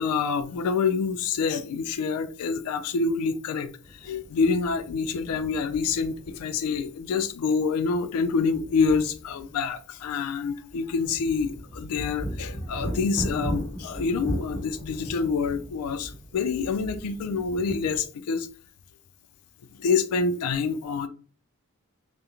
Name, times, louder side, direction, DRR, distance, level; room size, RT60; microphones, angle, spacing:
voice 1, 0.0-18.5 19.8-21.1, left 5 dB, 85° left, 0.3 m, -27 dB
sound 1, 3.8-6.9 7.2-7.5 8.0-9.8 10.0-10.1 10.4-18.0, right 1 dB, 10° left, 0.7 m, -37 dB
2.4 x 2.1 x 2.8 m
head